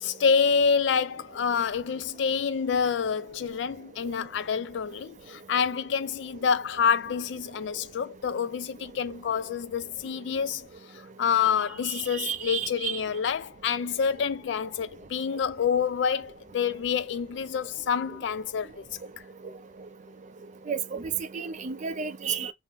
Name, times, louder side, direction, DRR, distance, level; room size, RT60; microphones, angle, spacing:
voice 1, 0.0-10.7 11.2-18.9, left 6 dB, 70° left, 0.3 m, -27 dB
voice 2, 12.2-12.9 20.7-21.0 21.3-22.5, right 7 dB, 40° right, 0.4 m, -31 dB
2.6 x 2.1 x 3.7 m
head